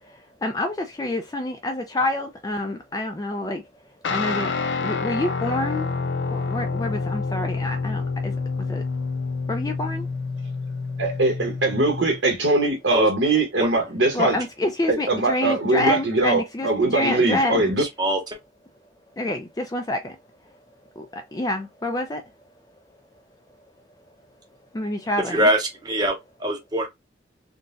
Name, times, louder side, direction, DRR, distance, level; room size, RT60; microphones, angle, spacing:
voice 1, 0.1-3.6 4.1-4.5 4.8-5.9 6.3-8.8 9.5-10.1 14.1-17.7 19.2-20.2 21.0-22.2 24.7-25.5, left 1 dB, 20° left, 0.4 m, -27 dB
Guitar, 4.0-12.2, left 4 dB, 80° left, 0.5 m, -28 dB
voice 2, 11.0-14.4 14.9-17.8, right 2 dB, 85° right, 1.1 m, -21 dB
voice 3, 17.8-18.2 25.3-26.9, equal, 20° right, 0.7 m, -23 dB
3.8 x 2.2 x 2.5 m
head